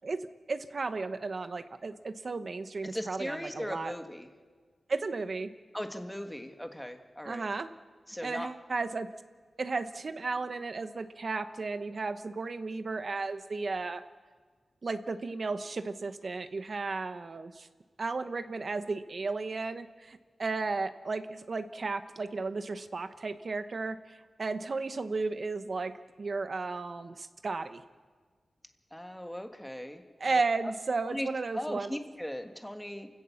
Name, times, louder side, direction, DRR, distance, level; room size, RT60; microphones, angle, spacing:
voice 1, 0.0-3.9 4.9-5.5 7.2-7.7 8.2-9.1 9.6-14.0 14.8-17.7 18.0-27.8 30.2-32.0, right 3 dB, 45° right, 11 dB, 1.0 m, -34 dB
voice 2, 2.9-4.3 5.7-7.5 8.1-8.5 28.9-30.4 31.0-31.3 31.5-33.1, equal, 5° left, 6 dB, 1.4 m, -38 dB
29.0 x 16.5 x 7.2 m, 1.5 s
wide cardioid pair, 155°, 0 cm